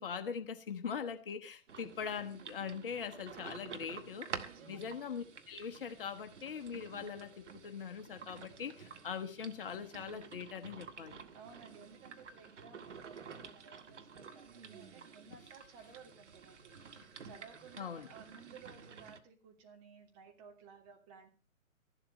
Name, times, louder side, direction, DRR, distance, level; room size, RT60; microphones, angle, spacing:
voice 1, 0.0-4.3 4.7-11.2 17.8-18.1, left 7 dB, 40° left, 7 dB, 1.2 m, -42 dB
sound 1, 1.7-19.2, right 6 dB, 60° right, 1.7 m, -51 dB
voice 2, 4.4-4.8 11.3-21.3, right 6 dB, 25° right, 2 dB, 3.1 m, -57 dB
15.0 x 11.5 x 5.4 m, 0.35 s
figure-of-eight pair, 130°, 41 cm